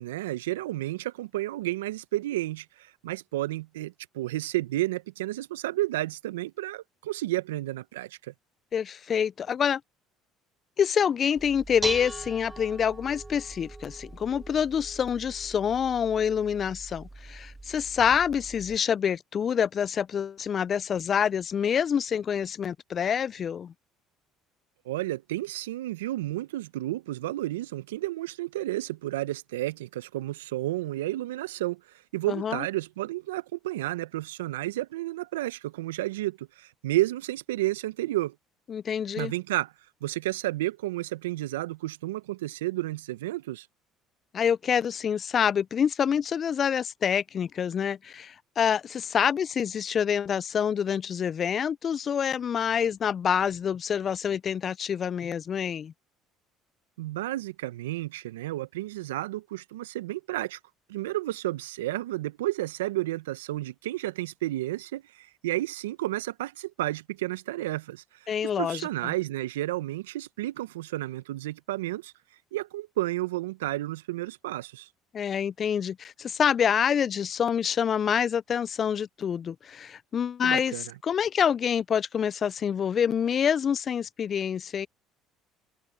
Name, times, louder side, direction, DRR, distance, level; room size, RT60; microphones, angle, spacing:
voice 1, 0.0-8.3 24.8-31.8 32.1-38.3 39.2-39.7 40.0-43.7 57.0-60.6 60.9-68.3 68.6-72.1 72.5-74.9 80.4-80.9, right 16 dB, 80° right, 1.1 m, -31 dB
voice 2, 8.7-9.8 10.8-23.7 32.3-32.6 38.7-39.3 44.3-55.9 68.3-69.1 75.1-80.7 81.0-84.9, left 8 dB, 45° left, 0.5 m, -27 dB
Dishes pots and pans, 11.4-18.8, right 2 dB, 15° right, 1.4 m, -40 dB
hypercardioid pair, 60°, 0 cm